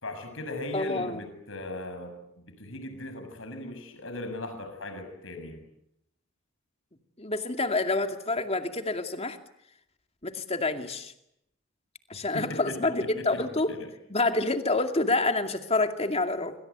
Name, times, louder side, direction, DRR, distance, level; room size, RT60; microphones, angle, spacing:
voice 1, 0.0-5.6 12.3-13.9, left 1 dB, 65° left, 8 dB, 6.8 m, -38 dB
voice 2, 0.7-1.2 7.2-9.4 10.2-11.1 12.1-13.7 14.1-16.5, left 2 dB, 30° left, 6 dB, 2.4 m, -27 dB
27.0 x 26.5 x 8.2 m, 0.79 s
head